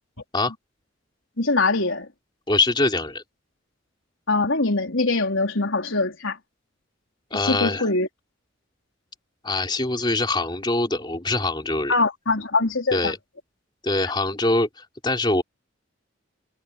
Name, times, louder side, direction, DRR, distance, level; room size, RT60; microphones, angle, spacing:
voice 1, 1.4-2.1 4.3-6.4 7.3-8.1 11.9-13.1, left 3 dB, 80° left, 4.1 m, -23 dB
voice 2, 2.5-3.2 7.3-7.9 9.4-11.9 12.9-13.2 13.8-15.4, left 2 dB, 25° left, 3.6 m, -23 dB
head